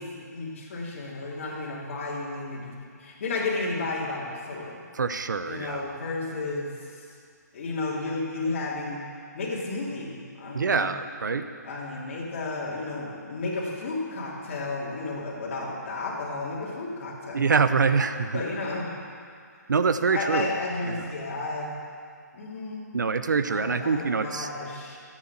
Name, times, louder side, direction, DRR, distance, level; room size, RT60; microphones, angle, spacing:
voice 1, 0.0-4.8 5.4-7.1 7.5-9.0 9.3-10.9 11.6-17.5 18.3-19.0 20.1-21.8 22.3-22.9 23.5-25.0, left 3 dB, 40° left, -6 dB, 3.1 m, -32 dB
voice 2, 4.9-5.8 10.5-11.5 17.3-18.4 19.7-20.5 20.9-21.0 22.9-24.5, right 5 dB, 85° right, 10 dB, 0.9 m, -25 dB
14.0 x 9.3 x 7.3 m, 2.3 s
hypercardioid pair, 165°, 10 cm